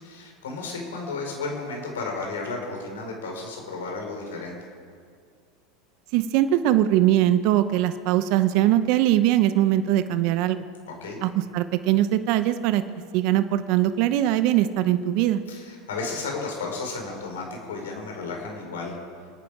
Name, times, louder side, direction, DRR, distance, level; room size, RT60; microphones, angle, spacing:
voice 1, 0.0-4.6 10.9-11.2 15.5-19.0, left 3 dB, 85° left, 1 dB, 4.7 m, -33 dB
voice 2, 6.1-10.6 11.2-12.8 13.1-15.4, right 12 dB, 60° right, 11 dB, 0.8 m, -21 dB
28.5 x 9.6 x 5.0 m, 2.2 s
hypercardioid pair, 100°, 0 cm